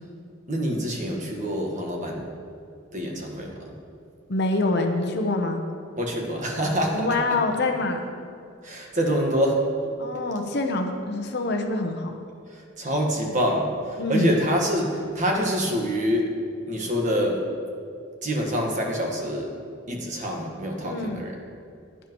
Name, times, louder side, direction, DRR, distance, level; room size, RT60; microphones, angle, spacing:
voice 1, 0.5-2.3 2.9-3.7 6.0-7.1 8.6-9.6 12.5-16.3 16.7-17.4 18.2-19.5 19.9-21.3, equal, 35° right, 0 dB, 1.5 m, -26 dB
voice 2, 4.3-5.6 6.9-8.0 10.0-12.1 14.0-14.3 20.8-21.3, left 2 dB, 50° left, 4 dB, 0.9 m, -25 dB
15.5 x 10.0 x 3.1 m, 2.4 s
head